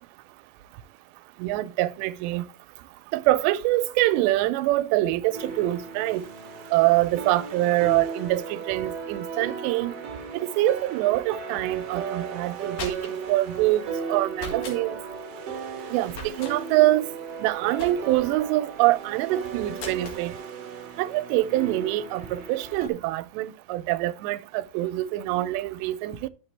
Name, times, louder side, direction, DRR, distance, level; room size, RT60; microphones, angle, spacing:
voice 1, 1.4-2.5 3.1-6.2 6.7-9.9 10.3-15.0 15.9-17.1 17.4-20.3 21.0-26.3, right 16 dB, 90° right, 2.8 m, -25 dB
sound 1, 5.3-22.9, right 5 dB, 70° right, 1.4 m, -36 dB
sound 2, 12.5-13.3 14.3-14.8 16.1-16.6 17.8-18.3 19.8-20.2, left 3 dB, 55° left, 2.9 m, -38 dB
10.5 x 7.3 x 3.2 m
omnidirectional pair, 4.9 m